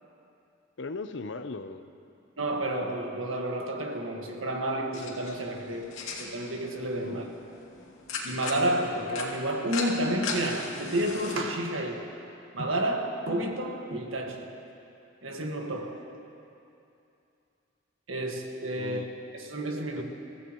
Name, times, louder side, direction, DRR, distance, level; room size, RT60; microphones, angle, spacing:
voice 1, 0.8-1.9 7.0-7.2 18.7-19.1 20.0-20.1, left 3 dB, 60° left, 10 dB, 0.6 m, -38 dB
voice 2, 2.4-7.2 8.2-12.1 12.5-14.5 15.2-16.1 18.1-19.1 19.3-20.0, right 1 dB, 80° right, 1 dB, 1.7 m, -30 dB
sound 1, 4.9-11.4, left 4 dB, 85° left, 2.5 m, -38 dB
29.0 x 15.0 x 3.1 m, 2.7 s
head